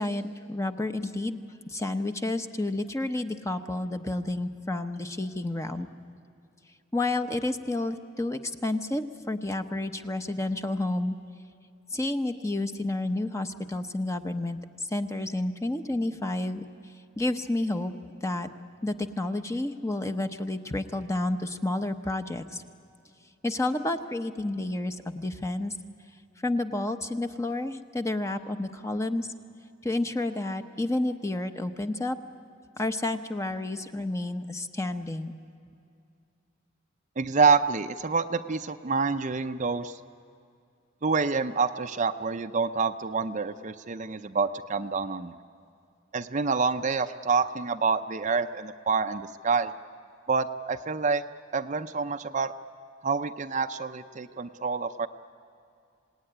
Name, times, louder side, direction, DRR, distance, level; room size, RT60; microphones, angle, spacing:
voice 1, 0.0-1.4 1.7-5.9 6.9-11.2 11.9-14.6 14.9-16.7 17.2-18.5 18.8-22.6 23.4-25.7 26.4-29.3 29.8-32.2 32.8-35.3, left 2 dB, 15° left, 8 dB, 0.9 m, -30 dB
voice 2, 37.2-40.0 41.0-45.4 46.1-49.7 50.3-51.2 51.5-52.5 53.0-55.1, right 5 dB, 40° right, 9 dB, 0.6 m, -27 dB
27.0 x 18.5 x 10.0 m, 2.5 s
head